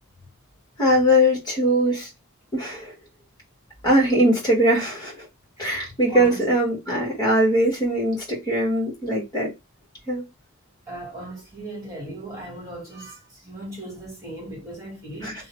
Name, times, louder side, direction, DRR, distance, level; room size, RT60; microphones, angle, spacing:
voice 1, 0.8-2.1 2.5-2.9 3.8-5.3 5.6-9.5 10.1-10.2 15.2-15.3, equal, 20° left, 1.3 m, -21 dB
voice 2, 6.1-6.4 10.9-15.5, right 1 dB, 15° right, 1.6 m, -37 dB
2.8 x 2.2 x 3.0 m
head